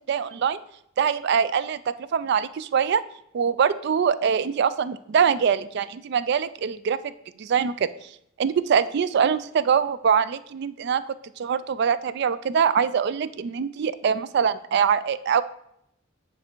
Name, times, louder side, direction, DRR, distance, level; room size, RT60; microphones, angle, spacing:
voice 1, 0.1-0.6 1.0-3.0 3.3-7.1 7.4-8.1 8.4-15.4, right 7 dB, 55° right, 15 dB, 0.3 m, -23 dB
9.1 x 3.4 x 4.4 m, 0.75 s
head